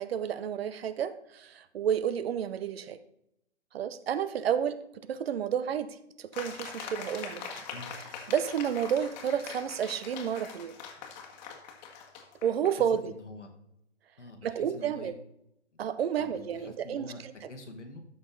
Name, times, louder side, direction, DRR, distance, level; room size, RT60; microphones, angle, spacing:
voice 1, 0.0-3.0 3.7-7.5 8.3-10.8 12.4-13.1 14.4-15.1 15.8-17.3, right 8 dB, 60° right, 14 dB, 0.8 m, -31 dB
sound 1, 6.3-12.7, left 6 dB, 40° left, 1.6 m, -43 dB
voice 2, 7.7-8.0 13.0-13.5 14.2-15.1 16.2-18.0, left 2 dB, 90° left, 4 dB, 2.1 m, -46 dB
13.0 x 5.6 x 3.9 m, 0.79 s
hypercardioid pair, 130°, 35 cm